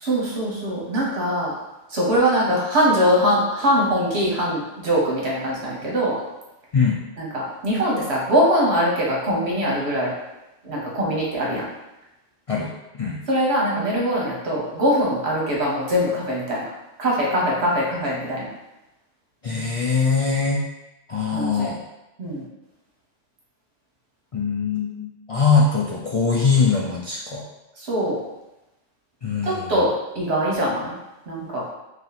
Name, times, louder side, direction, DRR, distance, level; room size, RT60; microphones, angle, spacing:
voice 1, 0.0-1.5 1.9-6.2 7.2-10.1 10.6-11.6 13.3-16.7 17.0-18.5 21.3-21.7 22.2-22.4 27.8-28.2 29.4-30.9 31.3-31.6, equal, 70° right, -4 dB, 1.3 m, -22 dB
voice 2, 19.4-20.6 21.1-21.8 24.3-27.4 29.2-29.8, left 5 dB, 60° left, -4 dB, 0.3 m, -22 dB
3.1 x 2.9 x 4.0 m, 0.96 s
omnidirectional pair, 1.2 m